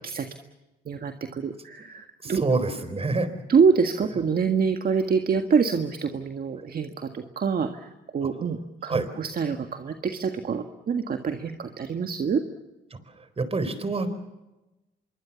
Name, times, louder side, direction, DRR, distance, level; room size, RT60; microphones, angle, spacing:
voice 1, 0.9-2.4 3.5-12.4, right 5 dB, 50° right, 6 dB, 1.8 m, -26 dB
voice 2, 2.2-3.3 8.2-8.3 8.8-9.1 12.9-14.1, right 3 dB, 30° right, 12 dB, 4.1 m, -27 dB
25.5 x 23.0 x 7.1 m, 1.0 s
cardioid pair, 90°, 20 cm